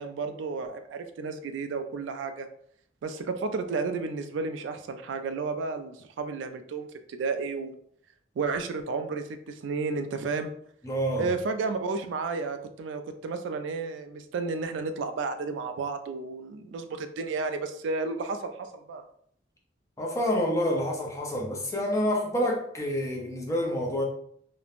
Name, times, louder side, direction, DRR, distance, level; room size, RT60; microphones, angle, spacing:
voice 1, 0.0-2.5 3.0-7.7 8.4-10.5 11.2-19.0, right 4 dB, 80° right, 8 dB, 0.3 m, -32 dB
voice 2, 10.8-11.3 20.0-24.0, equal, 15° left, -1 dB, 0.5 m, -28 dB
3.0 x 2.0 x 2.4 m, 0.65 s
head